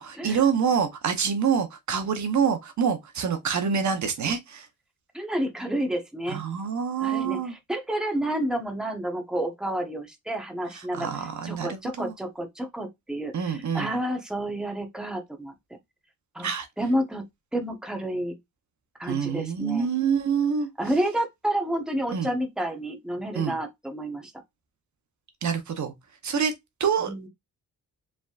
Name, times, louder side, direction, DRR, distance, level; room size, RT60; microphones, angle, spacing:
voice 1, 0.0-4.7 6.3-7.5 10.7-12.1 13.3-13.9 16.4-16.7 19.1-20.7 22.1-22.3 23.3-23.5 25.4-25.9 26.2-26.5 26.8-27.1, right 7 dB, 60° right, 0.9 m, -26 dB
voice 2, 5.1-6.4 7.0-11.1 11.4-15.5 16.3-16.5 16.8-17.2 17.5-18.4 19.0-19.9 20.8-24.3 27.0-27.3, right 1 dB, ahead, 1.0 m, -30 dB
4.9 x 3.6 x 2.4 m
wide cardioid pair, 125°, 33 cm